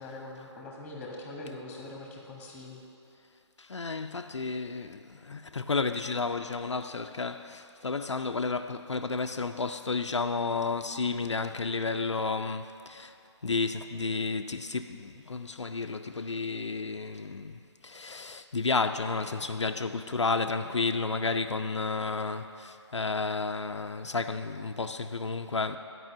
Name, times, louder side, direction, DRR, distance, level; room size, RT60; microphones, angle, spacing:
voice 1, 0.0-2.8, left 2 dB, 10° left, 1.5 m, -42 dB
voice 2, 3.6-13.1 13.4-25.8, left 4 dB, 75° left, 0.5 m, -32 dB
11.0 x 5.5 x 8.2 m
figure-of-eight pair, 140°, 15 cm